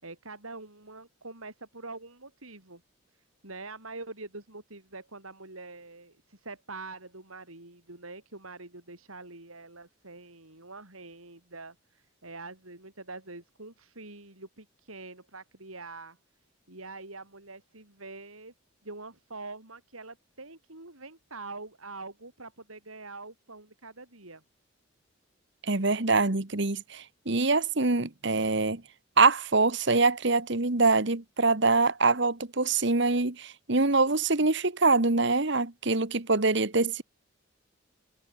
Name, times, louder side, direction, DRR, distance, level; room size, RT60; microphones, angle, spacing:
voice 1, 0.0-2.8 3.4-16.2 16.7-18.5 18.8-24.4, right 3 dB, 85° right, 6.8 m, -45 dB
voice 2, 25.7-28.8 29.2-37.0, right 3 dB, 55° right, 1.5 m, -24 dB
head